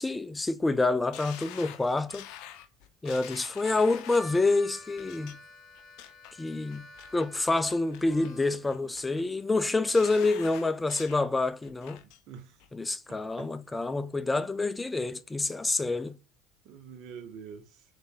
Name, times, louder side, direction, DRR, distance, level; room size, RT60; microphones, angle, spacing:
voice 1, 0.0-2.2 3.0-5.4 6.4-6.9 7.1-12.0 12.7-16.2, left 3 dB, 15° left, 0.4 m, -27 dB
sound 1, 1.1-4.4 5.0-5.3 5.7-6.3 6.7-7.3 7.7-8.3 8.7-9.2 9.6-11.2 11.6-12.2 12.6-12.7, left 11 dB, 65° left, 0.5 m, -46 dB
Harmonica, 3.8-8.7, left 2 dB, 45° left, 0.8 m, -49 dB
voice 2, 12.3-12.6 13.1-13.5 16.6-17.8, right 6 dB, 60° right, 0.8 m, -46 dB
3.9 x 3.3 x 3.5 m
hypercardioid pair, 75°, 0 cm